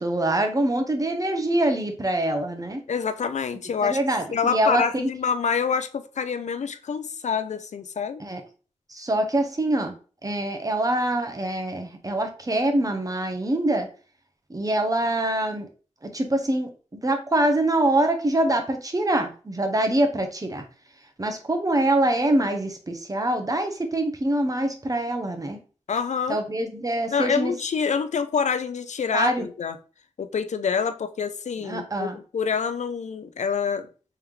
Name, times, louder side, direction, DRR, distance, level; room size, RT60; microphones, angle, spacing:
voice 1, 0.0-2.8 3.8-4.8 8.2-8.4 8.9-9.9 10.2-13.9 14.5-15.7 16.0-20.6 21.2-25.6 26.3-27.5 29.1-29.5 31.6-32.2, right 1 dB, 30° right, 0.8 m, -24 dB
voice 2, 2.9-4.0 4.3-8.2 25.9-26.4 27.1-29.8 30.2-33.9, left 6 dB, 70° left, 0.4 m, -26 dB
3.4 x 3.0 x 3.5 m
wide cardioid pair, 70°, 12 cm